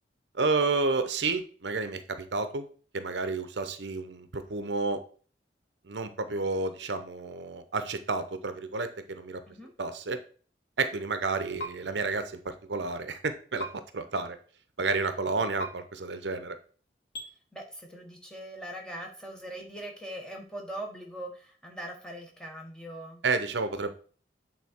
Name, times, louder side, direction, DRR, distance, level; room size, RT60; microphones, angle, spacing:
voice 1, 0.3-2.6 2.9-5.0 5.8-9.4 9.8-10.2 10.8-14.4 14.8-16.6 23.2-23.9, right 3 dB, 75° right, 10 dB, 0.7 m, -30 dB
sound 1, 11.6-11.7 13.6-13.7 15.6-15.7 17.1-17.3, right 1 dB, 60° left, 2.3 m, -35 dB
voice 2, 17.5-23.2, right 1 dB, 5° left, 0 dB, 1.3 m, -41 dB
8.4 x 3.8 x 4.4 m, 0.42 s
head